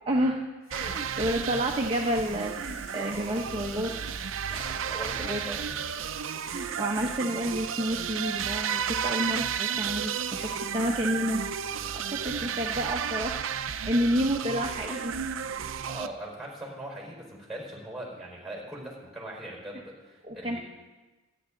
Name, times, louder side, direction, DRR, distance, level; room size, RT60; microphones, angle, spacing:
voice 1, 0.1-0.4 0.7-3.9 4.5-4.7 5.2-5.4 6.5-11.6 11.9-15.5 20.2-20.6, equal, 25° right, -1 dB, 0.9 m, -30 dB
Water tap faucet / Sink (filling or washing), 0.6-13.1, left 2 dB, 85° left, 5.7 m, -54 dB
sound 1, 0.7-16.1, right 7 dB, 70° right, 0.6 m, -33 dB
voice 2, 0.8-1.4 4.9-5.6 15.8-20.6, right 1 dB, ahead, -2 dB, 4.6 m, -40 dB
sound 2, 3.9-6.0 7.4-7.7, left 1 dB, 30° left, 2.2 m, -51 dB
26.0 x 10.0 x 3.9 m, 1.2 s
head